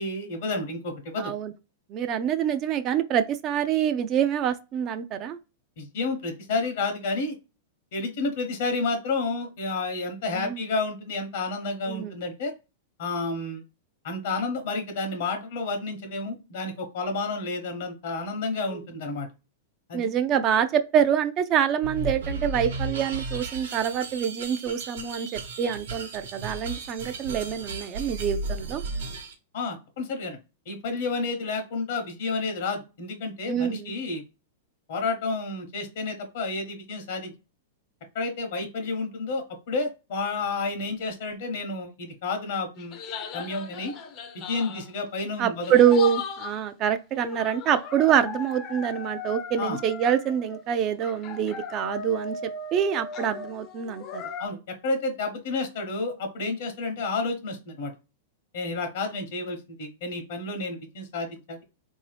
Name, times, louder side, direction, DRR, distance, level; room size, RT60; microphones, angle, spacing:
voice 1, 0.0-1.3 5.8-7.3 7.9-12.5 13.0-13.6 14.0-19.3 19.9-20.1 29.5-30.4 30.7-34.2 34.9-37.3 38.1-43.0 43.3-43.9 44.3-45.8 49.6-49.8 54.4-54.6 54.8-57.9 58.5-61.6, left 3 dB, 65° left, 0.9 m, -30 dB
voice 2, 1.2-1.5 1.9-5.4 10.3-10.6 11.9-12.1 18.7-18.8 19.9-28.8 33.5-33.9 45.4-52.4 52.7-54.2, right 9 dB, 30° right, 0.3 m, -25 dB
sound 1, 21.8-29.3, right 3 dB, 80° right, 1.0 m, -34 dB
sound 2, 42.8-44.9 45.6-46.6 47.2-50.7 51.0-54.5, left 5 dB, 35° left, 0.5 m, -38 dB
3.5 x 2.6 x 3.2 m
hypercardioid pair, 145°, 0 cm